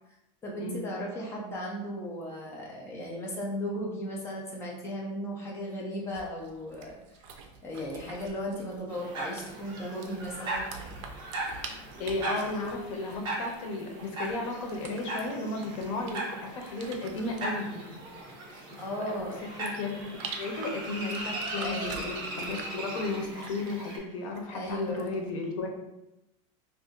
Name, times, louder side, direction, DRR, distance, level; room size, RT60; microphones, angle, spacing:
voice 1, 0.4-6.9 7.6-10.7 18.8-19.4 21.6-22.1 24.5-25.1, equal, 15° left, -3 dB, 0.7 m, -36 dB
sound 1, 6.1-25.3, right 5 dB, 65° right, 0.5 m, -48 dB
sound 2, 8.9-24.0, right 2 dB, 25° right, 0.8 m, -38 dB
voice 2, 12.0-17.8 18.7-19.1 19.4-20.0 20.4-25.7, left 3 dB, 85° left, 2 dB, 0.8 m, -34 dB
2.7 x 2.6 x 3.6 m, 0.92 s
supercardioid pair, 165°, 17 cm